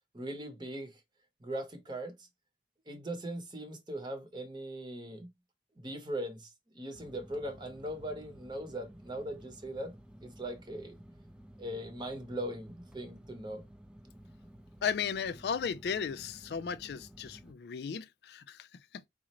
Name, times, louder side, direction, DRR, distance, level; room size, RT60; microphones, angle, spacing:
voice 1, 0.1-1.0 1.4-2.3 2.9-5.3 5.8-9.9 10.2-10.9 11.6-13.6, right 1 dB, 25° right, 0.8 m, -40 dB
sound 1, 6.9-17.5, equal, 5° right, 0.4 m, -54 dB
voice 2, 14.8-18.7 18.9-19.0, left 7 dB, 65° left, 0.3 m, -35 dB
4.1 x 2.5 x 2.9 m
head